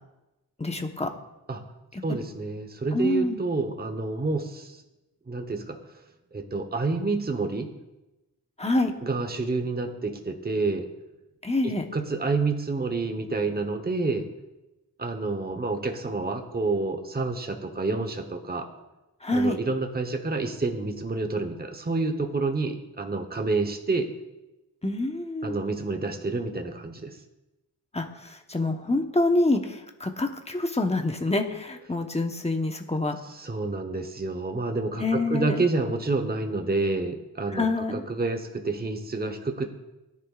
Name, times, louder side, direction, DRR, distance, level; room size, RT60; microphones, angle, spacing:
voice 1, 0.6-1.1 2.9-3.4 8.6-8.9 11.4-11.8 19.2-19.6 24.8-25.6 27.9-33.2 35.0-35.6 37.5-38.0, left 2 dB, 15° left, 4 dB, 1.0 m, -26 dB
voice 2, 2.0-4.8 5.3-5.8 6.3-7.7 9.0-10.9 11.6-14.3 15.0-18.7 19.3-24.1 25.4-27.2 33.3-37.7 37.9-39.7, right 3 dB, 25° right, 6 dB, 1.0 m, -28 dB
17.5 x 10.0 x 2.4 m, 0.99 s
wide cardioid pair, 80°, 39 cm